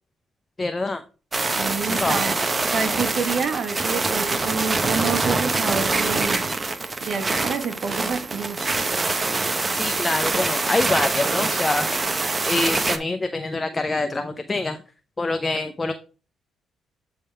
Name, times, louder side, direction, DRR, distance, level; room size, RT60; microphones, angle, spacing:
voice 1, 0.6-1.0 1.8-2.3 9.7-11.9 12.5-14.8 15.2-15.9, left 2 dB, 20° left, 0.5 m, -25 dB
sound 1, 1.3-13.0, right 3 dB, 25° right, 0.8 m, -24 dB
voice 2, 1.5-2.3 2.7-6.4 7.0-8.7, right 5 dB, 60° right, 1.3 m, -28 dB
8.4 x 3.5 x 4.5 m
cardioid pair, 90°, 0 cm